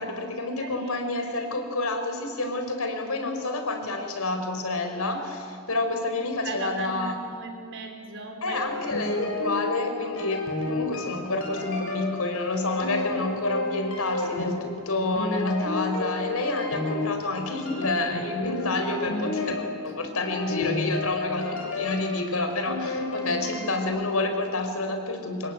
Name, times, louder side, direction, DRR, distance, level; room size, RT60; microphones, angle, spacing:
voice 1, 0.0-7.2 8.4-25.5, left 2 dB, 90° left, 5 dB, 4.4 m, -29 dB
voice 2, 0.6-1.0 6.4-9.2, right 3 dB, 60° right, 3 dB, 4.5 m, -38 dB
sound 1, 8.5-23.8, left 3 dB, 70° left, 7.3 m, -32 dB
26.0 x 22.0 x 9.3 m, 2.3 s
head